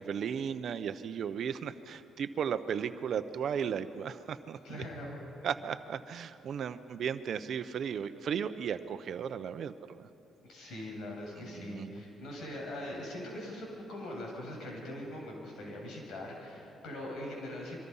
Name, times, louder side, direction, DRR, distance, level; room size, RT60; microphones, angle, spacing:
voice 1, 0.0-4.8 5.4-10.1 11.5-12.0, right 7 dB, 65° right, 11 dB, 0.9 m, -35 dB
voice 2, 4.6-5.5 10.5-17.8, left 1 dB, 75° left, -1 dB, 7.2 m, -42 dB
26.0 x 24.5 x 5.7 m, 2.9 s
cardioid pair, 90°, 0 cm